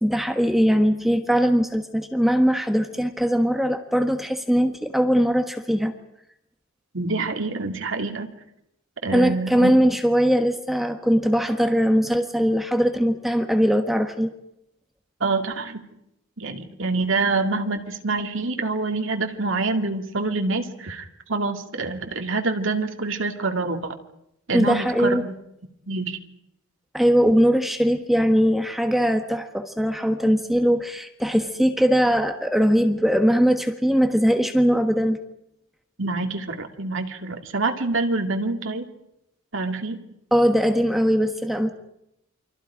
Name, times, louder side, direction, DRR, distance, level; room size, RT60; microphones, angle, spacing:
voice 1, 0.0-5.9 9.1-14.3 24.5-25.3 26.9-35.2 40.3-41.7, equal, ahead, 6 dB, 1.3 m, -20 dB
voice 2, 6.9-8.3 9.0-9.7 15.2-15.9 16.4-23.9 24.5-25.3 25.9-26.2 36.0-38.9 39.5-40.0, right 3 dB, 60° right, 4 dB, 2.3 m, -26 dB
28.5 x 24.5 x 5.0 m, 0.81 s
head